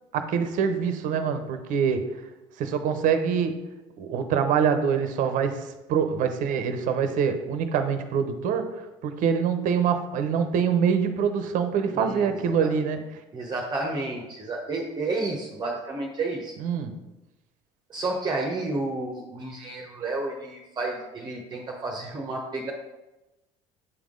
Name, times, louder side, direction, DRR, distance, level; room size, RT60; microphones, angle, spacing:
voice 1, 0.1-2.1 2.6-3.6 4.0-8.7 9.0-13.0 16.6-17.0, right 7 dB, 60° right, 8 dB, 0.8 m, -25 dB
voice 2, 11.9-12.7 13.3-16.5 17.9-22.7, right 2 dB, 30° right, 0 dB, 0.9 m, -31 dB
8.4 x 3.6 x 3.7 m, 1.0 s
supercardioid pair, 85°, 15 cm